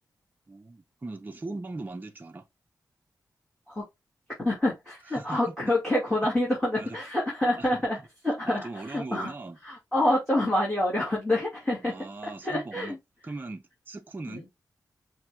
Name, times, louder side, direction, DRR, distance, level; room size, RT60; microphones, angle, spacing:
voice 1, 0.5-2.5 5.2-5.5 6.8-7.0 7.6-7.7 8.5-9.6 11.8-13.0 13.2-14.4, right 3 dB, 25° right, 0.6 m, -39 dB
voice 2, 4.4-9.3 9.6-11.9 12.4-13.0 14.3-14.4, left 1 dB, 5° left, 2.3 m, -27 dB
5.8 x 2.6 x 3.5 m
wide cardioid pair, 110°, 7 cm